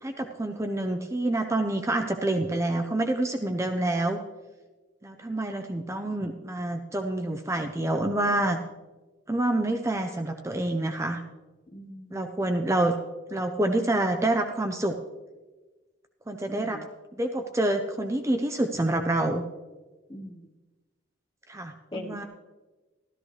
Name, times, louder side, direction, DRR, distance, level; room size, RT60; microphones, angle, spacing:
voice 1, 0.0-4.2 5.0-8.6 9.3-11.2 12.1-12.9 13.3-14.9 16.3-16.8 17.1-19.4 21.5-22.2, right 1 dB, 15° right, 6 dB, 0.5 m, -27 dB
voice 2, 11.7-12.3 16.5-16.9 20.1-20.5 21.9-22.2, left 1 dB, 25° left, 3 dB, 1.1 m, -41 dB
13.0 x 13.0 x 3.2 m, 1.2 s
head